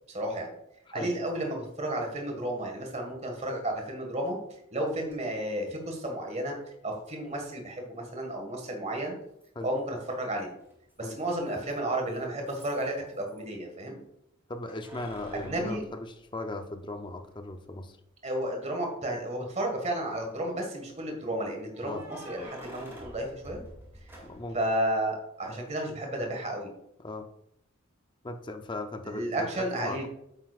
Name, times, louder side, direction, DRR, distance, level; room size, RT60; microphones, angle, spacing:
voice 1, 0.1-0.5 0.9-4.4 4.7-6.5 6.8-9.2 9.6-10.5 11.0-14.0 15.4-15.8 18.2-23.6 24.5-26.7 29.0-30.1, right 1 dB, 30° right, 2 dB, 1.7 m, -32 dB
Keys jangling, 5.1-5.2 7.1-7.2 9.4-9.9 10.2-13.4 14.7-16.8 17.3-17.4 19.2-19.7 21.7-24.6, equal, 10° right, 2.4 m, -49 dB
voice 2, 14.5-18.0 21.8-22.0 24.2-24.6 27.0-27.3 28.2-30.1, left 2 dB, 20° left, 6 dB, 0.6 m, -38 dB
9.0 x 7.6 x 2.4 m, 0.79 s
head